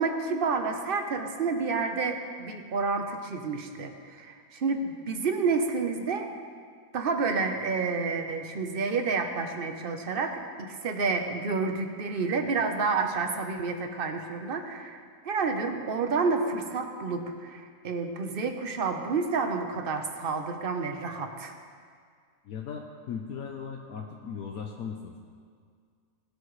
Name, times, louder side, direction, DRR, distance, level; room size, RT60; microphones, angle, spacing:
voice 1, 0.0-6.3 6.9-21.5, right 4 dB, 45° right, 5 dB, 0.9 m, -29 dB
voice 2, 22.4-25.2, left 6 dB, 65° left, 1 dB, 1.2 m, -38 dB
20.0 x 8.6 x 3.2 m, 2.1 s
omnidirectional pair, 1.7 m